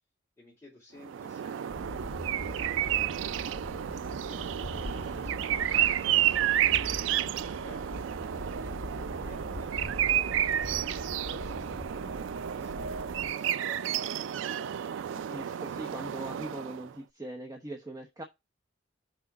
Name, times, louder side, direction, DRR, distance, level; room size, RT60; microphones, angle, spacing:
voice 1, 0.4-2.9 3.3-6.7 7.1-8.1 8.8-9.7 10.0-14.1, left 2 dB, 15° left, -7 dB, 3.4 m, -55 dB
sound 1, 1.0-16.9, right 10 dB, 80° right, 0.3 m, -31 dB
sound 2, 1.7-13.3, left 1 dB, 50° left, 0.9 m, -42 dB
sound 3, 4.7-9.9, right 1 dB, 45° right, 2.1 m, -56 dB
voice 2, 15.1-18.2, right 1 dB, 20° right, 1 dB, 0.9 m, -41 dB
6.0 x 5.1 x 4.0 m, 0.21 s
head